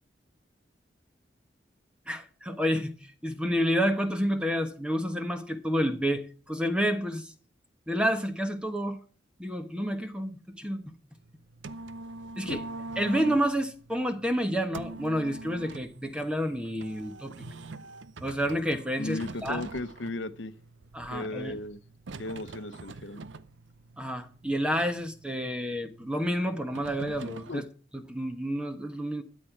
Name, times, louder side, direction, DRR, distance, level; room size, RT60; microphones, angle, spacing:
voice 1, 2.1-2.9 3.2-7.3 7.9-9.0 9.4-10.9 12.4-12.6 13.0-17.3 18.2-19.6 20.9-21.6 24.0-27.6 27.9-29.2, equal, 5° right, 1.2 m, -29 dB
sound 1, 11.2-27.6, right 2 dB, 85° right, 0.7 m, -44 dB
voice 2, 19.0-20.5 21.1-21.8 22.2-23.2 27.5-27.6, left 2 dB, 75° left, 0.9 m, -36 dB
13.0 x 9.2 x 4.7 m
head